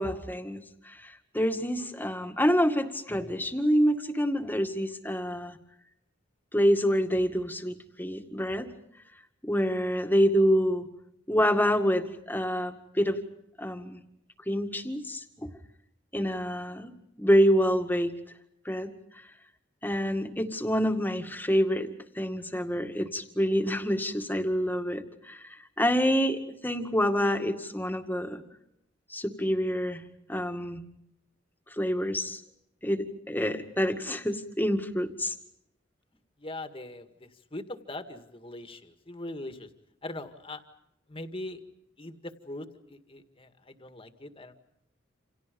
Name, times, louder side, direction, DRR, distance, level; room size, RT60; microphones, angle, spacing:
voice 1, 0.0-5.6 6.5-8.7 9.4-10.9 11.3-13.2 13.6-14.0 14.5-15.5 16.1-16.9 17.2-18.1 18.7-18.9 19.8-21.9 22.2-28.4 29.1-30.0 30.3-30.8 31.8-32.4 32.8-35.3, equal, 10° left, 6 dB, 2.0 m, -27 dB
voice 2, 36.4-39.7 40.0-40.6 41.1-41.6 42.0-44.5, left 1 dB, 30° left, 8 dB, 2.1 m, -41 dB
29.5 x 28.0 x 5.4 m, 0.79 s
head